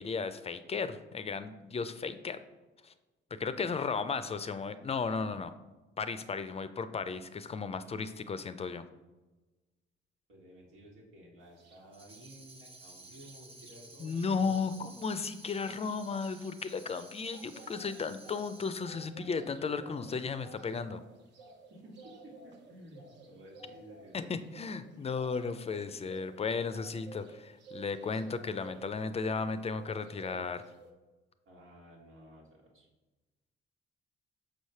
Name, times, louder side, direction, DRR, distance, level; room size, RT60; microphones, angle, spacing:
voice 1, 0.0-2.4 2.8-2.9 3.3-5.5 6.0-8.8 14.0-21.0 24.1-30.6, left 5 dB, 30° left, 11 dB, 0.4 m, -35 dB
voice 2, 10.3-14.9 21.7-24.2 31.4-32.9, right 1 dB, 90° right, -2 dB, 1.8 m, -54 dB
sound 1, 11.6-11.8 12.1-13.8 14.1-14.2 14.5-29.5 29.8-30.9, right 3 dB, 65° right, 0.9 m, -54 dB
Tambourine, 11.9-19.0, right 3 dB, 30° right, 0.9 m, -54 dB
6.3 x 3.2 x 5.5 m, 1.1 s
cardioid pair, 90°, 20 cm